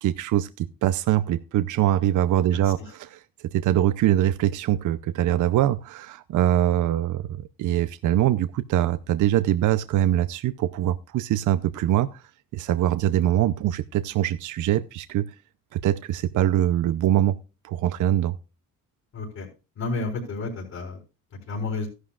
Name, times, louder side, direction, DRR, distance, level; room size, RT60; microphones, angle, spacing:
voice 1, 0.0-3.2 3.5-12.2 12.5-15.3 15.7-17.4 17.6-18.3, right 12 dB, 60° right, 13 dB, 0.7 m, -23 dB
voice 2, 2.5-2.9 19.1-19.5 19.8-21.0 21.5-21.9, left 3 dB, 50° left, -1 dB, 4.5 m, -31 dB
14.5 x 11.0 x 2.4 m, 0.29 s
cardioid pair, 135°, 34 cm